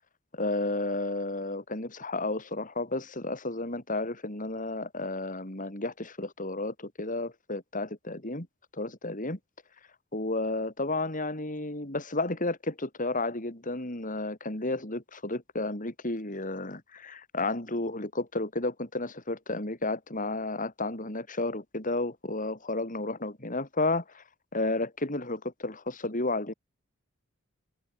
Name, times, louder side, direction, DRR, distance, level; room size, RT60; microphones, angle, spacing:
voice 1, 0.3-8.5 8.7-9.4 10.1-24.2 24.5-26.5, left 2 dB, 40° left, 4.3 m, -32 dB
head